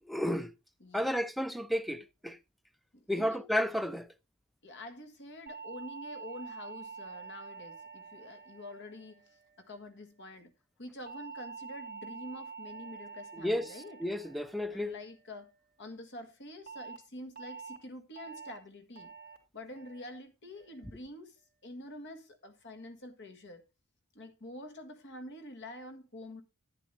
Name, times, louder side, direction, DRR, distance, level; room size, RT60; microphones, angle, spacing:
voice 1, 0.1-0.5 0.9-2.4 3.1-4.1 13.4-13.7 14.0-14.9, equal, ahead, 0.5 m, -32 dB
voice 2, 0.8-1.2 2.9-3.4 4.6-10.5 10.8-14.0 14.7-15.5 15.8-19.1 19.5-21.4 21.6-23.6 24.1-26.4, left 1 dB, 55° left, 1.7 m, -47 dB
sound 1, 5.5-9.9 11.1-15.5 16.7-17.0 17.4-17.8 18.2-18.6 19.0-19.4 19.8-20.2 20.6-21.0, right 5 dB, 45° right, 2.5 m, -47 dB
10.0 x 9.8 x 3.3 m
head